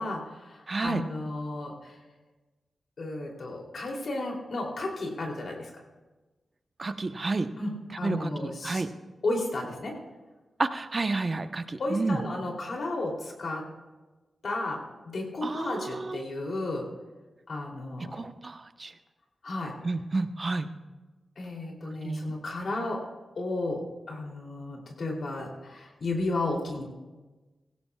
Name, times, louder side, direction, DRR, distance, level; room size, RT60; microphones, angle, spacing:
voice 1, 0.0-2.0 3.0-5.7 7.6-7.7 8.0-8.8 9.2-10.0 11.8-13.7 14.4-16.9 17.5-18.2 19.4-19.7 21.4-23.0 23.3-26.8, left 2 dB, 70° left, 0 dB, 2.9 m, -33 dB
voice 2, 0.7-1.0 6.8-7.5 8.0-8.9 10.6-12.2 15.4-16.2 18.1-18.9 19.8-20.7 22.0-22.3, right 3 dB, 45° right, 9 dB, 0.9 m, -30 dB
17.0 x 16.0 x 2.3 m, 1.2 s
cardioid pair, 45°, 0 cm